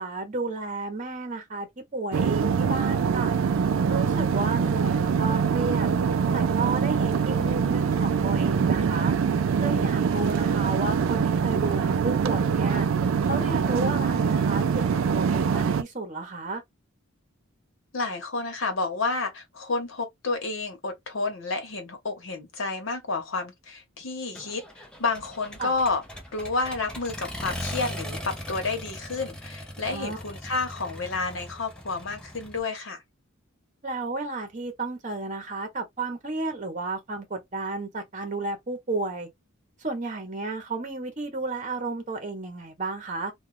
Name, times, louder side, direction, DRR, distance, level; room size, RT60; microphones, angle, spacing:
voice 1, 0.0-1.7 1.9-3.3 3.9-5.9 6.3-9.1 9.6-12.9 13.3-14.9 15.1-16.6 25.6-25.7 29.9-30.2 33.8-39.3 39.8-43.3, right 3 dB, 35° right, 0.9 m, -32 dB
sound 1, 2.1-15.8, right 6 dB, 70° right, 0.3 m, -24 dB
voice 2, 17.9-26.0 26.3-33.0, left 3 dB, 65° left, 1.1 m, -30 dB
Accelerating revving vroom, 24.3-32.6, equal, 5° left, 0.5 m, -39 dB
2.4 x 2.3 x 3.2 m
head